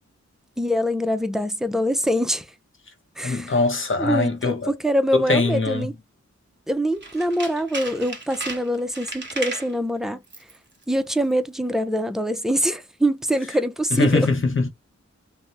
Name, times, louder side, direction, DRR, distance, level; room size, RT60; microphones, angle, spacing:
voice 1, 0.6-2.5 3.2-3.5 4.0-5.9 6.7-10.2 10.9-14.3, equal, ahead, 0.4 m, -24 dB
voice 2, 3.2-4.7 5.1-5.9 13.9-14.7, left 3 dB, 45° left, 0.8 m, -22 dB
Tools, 6.9-9.7 10.2-10.6 10.8-10.9, right 3 dB, 40° right, 0.9 m, -34 dB
2.7 x 2.1 x 3.2 m
wide cardioid pair, 85°, 29 cm